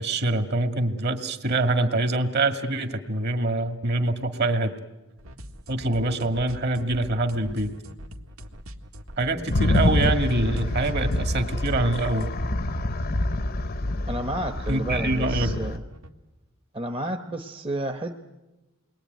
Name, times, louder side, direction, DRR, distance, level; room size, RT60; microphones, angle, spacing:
voice 1, 0.0-4.7 5.7-7.7 9.2-12.3 14.7-15.6, right 2 dB, 50° right, 7 dB, 2.0 m, -25 dB
sound 1, 5.2-16.1, equal, 90° right, 1.9 m, -42 dB
sound 2, 9.5-15.8, left 1 dB, 45° left, 0.8 m, -26 dB
voice 2, 14.1-15.8 16.7-18.2, right 1 dB, 25° right, 4 dB, 1.0 m, -31 dB
29.0 x 22.0 x 9.3 m, 1.1 s
head